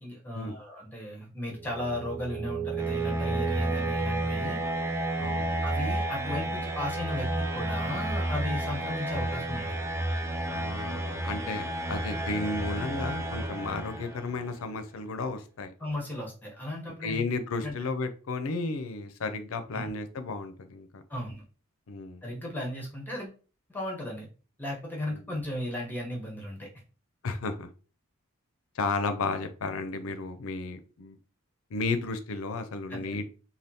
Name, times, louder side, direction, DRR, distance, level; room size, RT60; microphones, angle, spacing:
voice 1, 0.0-4.6 5.6-9.8 11.4-11.5 15.8-17.3 17.6-17.7 19.7-19.9 21.1-21.4 22.2-23.4 23.7-24.3 24.6-26.7 32.9-33.2, left 1 dB, 10° left, -2 dB, 0.8 m, -36 dB
sound 1, 1.5-14.4, right 2 dB, 15° right, 0.4 m, -31 dB
voice 2, 5.2-5.6 10.5-15.7 17.0-21.0 21.9-22.2 25.1-25.4 27.2-27.7 28.8-31.2 31.7-33.3, left 3 dB, 75° left, 9 dB, 0.5 m, -33 dB
3.4 x 2.2 x 2.7 m, 0.36 s
head